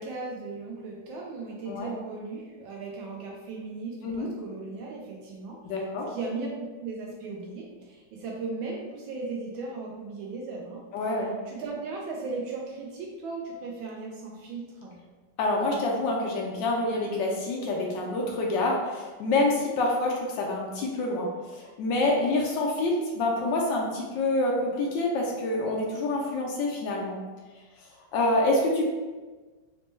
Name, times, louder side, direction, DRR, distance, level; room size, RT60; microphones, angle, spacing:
voice 1, 0.0-5.6 6.1-10.8 11.5-15.0, right 3 dB, 80° right, -2 dB, 1.3 m, -37 dB
voice 2, 5.6-6.1 10.9-11.3 15.4-27.2 28.1-28.9, left 2 dB, 75° left, -1 dB, 1.2 m, -27 dB
4.1 x 2.2 x 3.1 m, 1.3 s
omnidirectional pair, 2.1 m